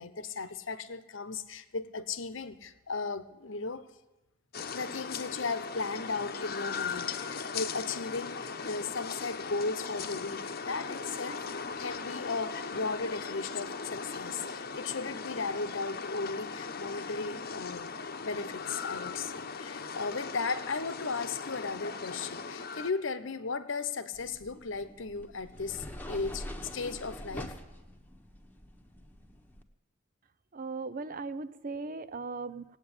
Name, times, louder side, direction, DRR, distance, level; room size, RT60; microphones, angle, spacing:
voice 1, 0.0-3.9 4.7-26.5 26.7-27.5, left 4 dB, 70° left, 13 dB, 1.0 m, -36 dB
sound 1, 4.5-22.9, left 5 dB, 50° left, 0.9 m, -38 dB
sound 2, 24.1-29.6, left 1 dB, 10° left, 1.2 m, -45 dB
voice 2, 30.5-32.6, right 3 dB, 45° right, 15 dB, 0.6 m, -38 dB
17.5 x 8.9 x 8.9 m, 1.0 s
head